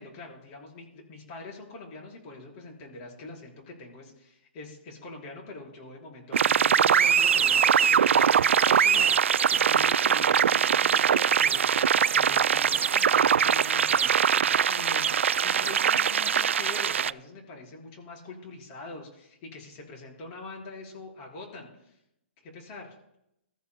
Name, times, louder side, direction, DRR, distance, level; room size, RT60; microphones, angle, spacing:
voice 1, 0.0-22.0 22.4-23.0, left 3 dB, 30° left, -1 dB, 4.8 m, -44 dB
sound 1, 6.3-17.1, right 7 dB, 80° right, 0.3 m, -22 dB
22.0 x 14.0 x 2.3 m, 0.80 s
hypercardioid pair, 150°, 7 cm